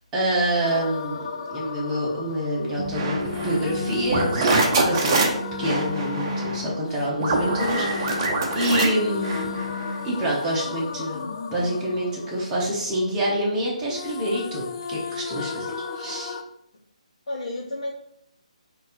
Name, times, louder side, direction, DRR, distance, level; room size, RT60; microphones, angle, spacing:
voice 1, 0.1-5.2 5.6-8.3 8.5-9.5 10.0-16.4, right 1 dB, 15° right, -5 dB, 1.2 m, -27 dB
sound 1, 0.6-13.6 13.9-16.4, left 5 dB, 40° left, 0.3 m, -35 dB
sound 2, 2.8-10.1, right 2 dB, 35° right, 0.8 m, -25 dB
voice 2, 17.3-17.9, left 2 dB, 60° left, -6 dB, 0.9 m, -32 dB
3.9 x 2.7 x 4.2 m, 0.75 s
figure-of-eight pair, 145°, 4 cm